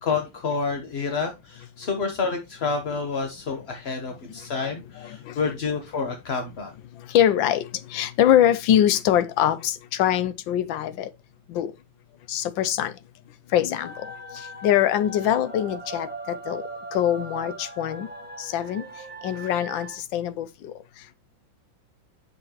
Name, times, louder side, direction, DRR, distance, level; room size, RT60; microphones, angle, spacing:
voice 1, 0.0-6.7, left 4 dB, 45° left, 0.8 m, -29 dB
voice 2, 5.0-5.4 7.1-7.6 7.9-11.1 11.5-11.7 12.3-12.9 13.5-14.1 14.3-16.6 16.9-18.1 18.4-18.8 19.2-20.7, left 11 dB, 75° left, 1.3 m, -23 dB
sound 1, 13.7-20.0, right 2 dB, 5° right, 0.8 m, -39 dB
7.2 x 6.5 x 2.9 m
omnidirectional pair, 2.2 m